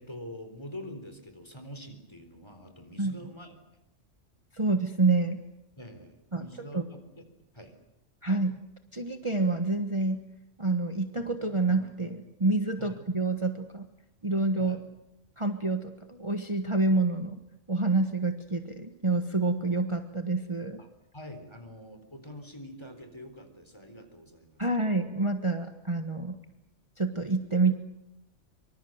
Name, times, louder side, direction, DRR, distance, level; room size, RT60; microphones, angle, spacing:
voice 1, 0.0-3.6 5.8-7.2 7.5-7.7 12.8-12.9 14.6-14.8 20.8-20.9 21.1-24.7, left 1 dB, 20° left, 7 dB, 4.1 m, -45 dB
voice 2, 4.5-5.4 6.3-6.5 6.7-6.8 8.2-8.6 8.9-10.2 10.6-13.9 14.2-14.8 15.4-17.4 17.7-20.8 24.6-26.4 27.0-27.7, right 3 dB, 25° right, 6 dB, 1.4 m, -27 dB
25.0 x 25.0 x 7.9 m, 0.86 s
omnidirectional pair, 1.3 m